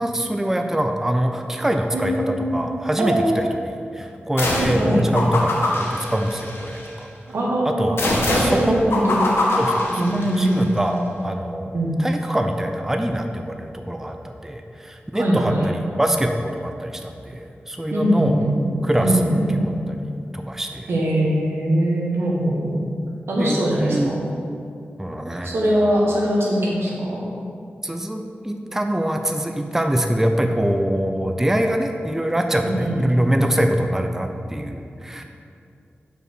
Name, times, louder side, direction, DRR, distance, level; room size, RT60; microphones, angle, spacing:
voice 1, 0.0-7.1 7.6-8.1 8.3-9.0 9.6-11.7 12.0-18.4 18.8-19.3 19.9-20.0 20.3-20.9 23.4-24.2 25.0-25.6 27.8-35.2, right 1 dB, 10° right, 4 dB, 0.4 m, -24 dB
voice 2, 1.9-2.7 3.0-3.4 4.5-5.0 7.3-9.2 10.0-10.6 11.7-12.0 15.1-15.8 17.9-19.7 20.9-22.8 23.3-24.2 25.4-27.2 32.6-33.1, right 1 dB, 85° right, -3 dB, 1.3 m, -22 dB
sound 1, 4.4-4.8 5.1-6.9 8.0-10.6, left 2 dB, 80° left, 1.0 m, -23 dB
5.1 x 4.9 x 6.2 m, 2.4 s
wide cardioid pair, 75°, 4 cm